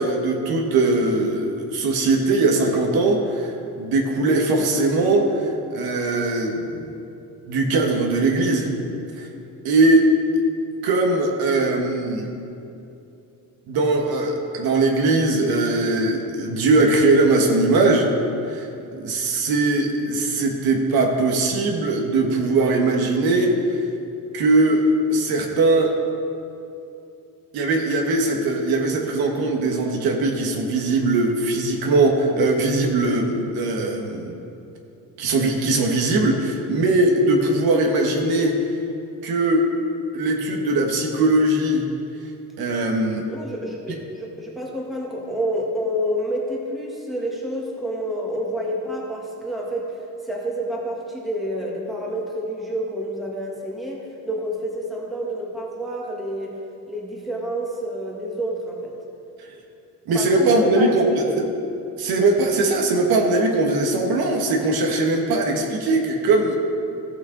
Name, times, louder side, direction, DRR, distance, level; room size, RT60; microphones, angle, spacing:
voice 1, 0.0-6.8 7.5-8.7 9.2-9.3 9.6-10.1 10.8-12.3 13.7-18.1 18.5-18.7 19.0-23.8 24.3-26.0 27.5-34.4 35.2-38.6 39.2-39.7 40.1-41.8 42.6-43.2 60.1-61.5 62.0-66.6, right 2 dB, 85° right, 1 dB, 1.5 m, -20 dB
voice 2, 43.2-49.9 50.2-56.5 56.9-58.9 60.1-60.9 61.2-61.4, equal, ahead, -3 dB, 1.4 m, -28 dB
16.0 x 6.3 x 3.9 m, 2.7 s
cardioid pair, 155°, 36 cm